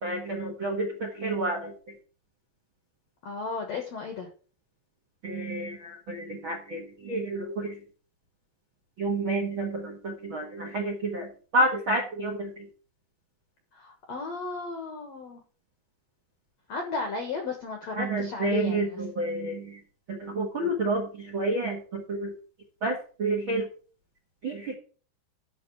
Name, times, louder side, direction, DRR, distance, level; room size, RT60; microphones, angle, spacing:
voice 1, 0.0-2.0 5.2-7.8 9.0-12.7 17.9-19.8 20.1-22.3 22.8-23.7 24.4-24.7, right 2 dB, 60° right, 1 dB, 1.3 m, -30 dB
voice 2, 3.2-4.3 13.7-15.4 16.7-19.0, left 4 dB, 70° left, 4 dB, 1.6 m, -34 dB
11.5 x 4.0 x 7.8 m, 0.40 s
omnidirectional pair, 5.1 m